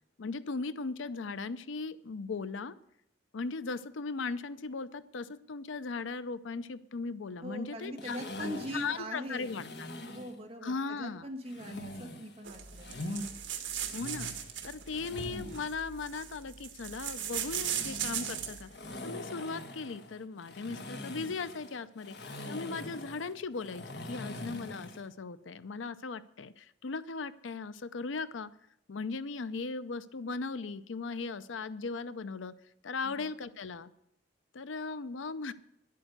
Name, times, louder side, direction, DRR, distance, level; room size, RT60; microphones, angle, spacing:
voice 1, 0.2-2.8 3.3-9.9 10.6-11.3 13.9-14.3 14.6-18.7 19.0-22.2 22.5-28.5 28.9-32.5 32.8-33.9 34.5-35.5, left 4 dB, 85° left, 15 dB, 0.6 m, -38 dB
voice 2, 7.4-9.6 10.0-12.9 33.0-33.3, equal, 30° right, 1 dB, 2.1 m, -42 dB
sound 1, 8.0-10.4 11.5-13.3 13.7-15.7 17.1-25.1, left 1 dB, 60° left, 1.4 m, -43 dB
sound 2, 12.5-18.7, right 9 dB, 70° right, 1.5 m, -38 dB
11.0 x 8.5 x 8.0 m, 0.75 s
head